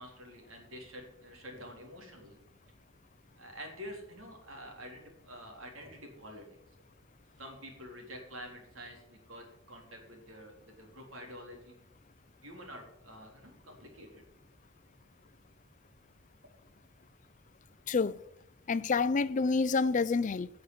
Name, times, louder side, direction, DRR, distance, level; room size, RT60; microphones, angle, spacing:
voice 1, 0.0-2.4 3.4-6.5 7.4-11.8 12.4-14.2, equal, 85° right, 3.7 m, -48 dB
voice 2, 17.9-18.2 18.7-20.5, left 4 dB, 40° left, 0.4 m, -28 dB
12.0 x 6.6 x 9.4 m
head